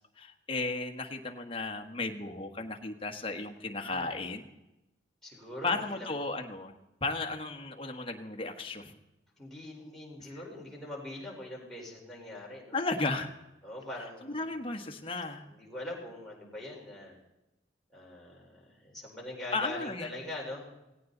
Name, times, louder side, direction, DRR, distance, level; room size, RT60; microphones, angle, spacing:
voice 1, 0.2-4.5 5.6-6.7 7.0-8.9 12.7-13.3 14.2-15.4 19.5-20.1, left 3 dB, 30° left, 4 dB, 1.5 m, -34 dB
voice 2, 3.7-4.2 5.2-6.2 9.4-12.8 13.6-14.5 15.5-17.2 17.9-20.7, left 1 dB, ahead, -4 dB, 4.4 m, -43 dB
17.5 x 17.5 x 4.0 m, 0.95 s
head